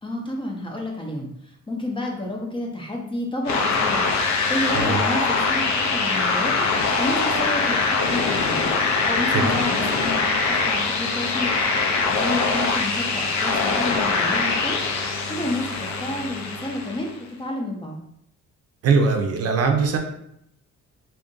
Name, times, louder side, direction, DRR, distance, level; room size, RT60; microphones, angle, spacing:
voice 1, 0.0-4.1 4.5-6.7 7.0-8.7 9.0-11.5 12.1-14.8 15.3-18.0, left 1 dB, 15° left, 0 dB, 0.5 m, -30 dB
sound 1, 3.5-17.2, left 4 dB, 65° left, 0.6 m, -23 dB
voice 2, 18.8-20.0, right 4 dB, 50° right, 4 dB, 0.5 m, -21 dB
2.7 x 2.5 x 3.7 m, 0.75 s
cardioid pair, 140°, 31 cm